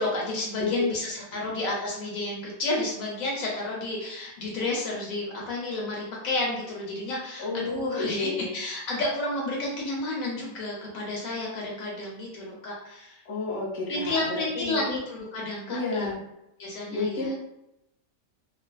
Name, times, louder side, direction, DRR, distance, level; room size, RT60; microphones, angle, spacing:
voice 1, 0.0-13.2 13.9-16.2 16.6-17.3, left 2 dB, 70° left, -3 dB, 0.9 m, -31 dB
voice 2, 7.4-8.5 13.2-15.0 15.7-16.2 16.9-17.3, left 3 dB, 30° left, -6 dB, 0.7 m, -31 dB
2.6 x 2.4 x 2.2 m, 0.85 s
omnidirectional pair, 1.6 m